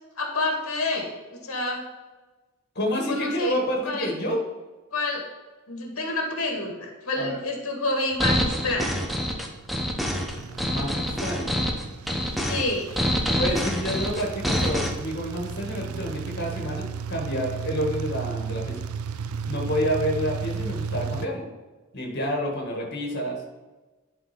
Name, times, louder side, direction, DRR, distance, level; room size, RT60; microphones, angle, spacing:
voice 1, 0.2-1.8 3.1-3.6 3.9-4.1 4.9-5.2 5.7-8.9 12.4-12.9, left 2 dB, 80° left, 1 dB, 1.9 m, -28 dB
voice 2, 2.8-4.4 7.2-7.4 10.7-11.6 13.4-18.8 19.5-21.5 21.9-23.4, equal, 50° left, -1 dB, 1.8 m, -29 dB
sound 1, 8.2-14.9, equal, ahead, 0.8 m, -26 dB
sound 2, 9.3-21.3, right 6 dB, 90° right, 0.5 m, -34 dB
11.0 x 4.5 x 4.4 m, 1.2 s
head